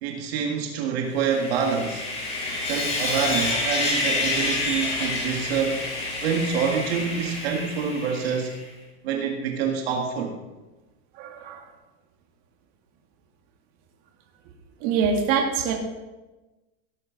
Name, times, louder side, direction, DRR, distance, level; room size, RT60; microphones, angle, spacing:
voice 1, 0.0-2.0 2.6-5.9 6.2-8.5 9.0-10.4, right 6 dB, 60° right, 2 dB, 1.9 m, -26 dB
Sawing, 1.1-8.6, left 2 dB, 15° left, 2.3 m, -28 dB
voice 2, 11.2-11.6 14.8-15.7, right 6 dB, 40° right, 1 dB, 2.0 m, -24 dB
17.5 x 9.6 x 4.0 m, 1.1 s
supercardioid pair, 175°, 35 cm